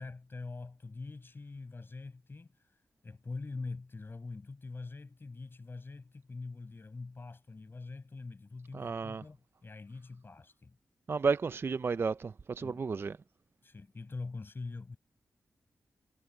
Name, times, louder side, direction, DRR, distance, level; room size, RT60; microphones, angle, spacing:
voice 1, 0.0-2.5 3.0-10.8 12.6-12.8 13.6-15.0, left 3 dB, 40° left, 5.7 m, -44 dB
voice 2, 8.7-9.2 11.1-13.2, right 5 dB, 40° right, 0.3 m, -32 dB
wide cardioid pair, 90°, 6 cm